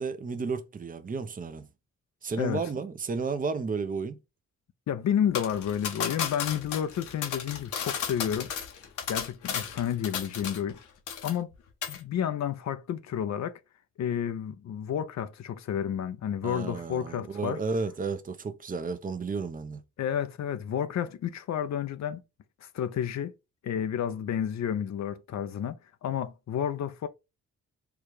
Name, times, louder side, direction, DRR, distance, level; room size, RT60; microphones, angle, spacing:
voice 1, 0.0-1.7 2.2-4.2 16.4-19.8, right 4 dB, 30° right, 0.7 m, -32 dB
voice 2, 4.9-8.5 9.1-10.8 11.2-11.5 11.9-13.6 14.0-17.6 20.0-22.2 22.6-23.3 23.6-25.8 26.0-27.1, left 9 dB, 65° left, 0.6 m, -30 dB
sound 1, 5.3-10.8 11.1-11.5 11.8-12.0, left 7 dB, 85° left, 1.3 m, -34 dB
4.7 x 2.4 x 4.7 m
cardioid pair, 85°, 29 cm